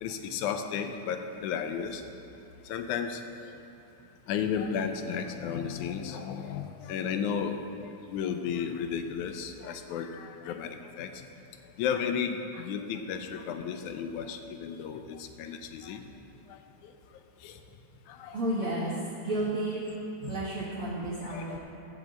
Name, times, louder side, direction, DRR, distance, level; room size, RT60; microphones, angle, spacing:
voice 1, 0.0-2.0 2.7-3.2 4.3-11.1 11.8-16.0 16.8-16.9 17.4-17.5 18.1-18.4 20.2-20.3 21.3-21.6, left 7 dB, 80° left, 7 dB, 2.0 m, -33 dB
voice 2, 18.3-18.9 19.2-19.8 20.3-21.6, right 1 dB, 55° right, -7 dB, 1.9 m, -31 dB
13.5 x 4.8 x 7.5 m, 2.8 s
omnidirectional pair, 3.5 m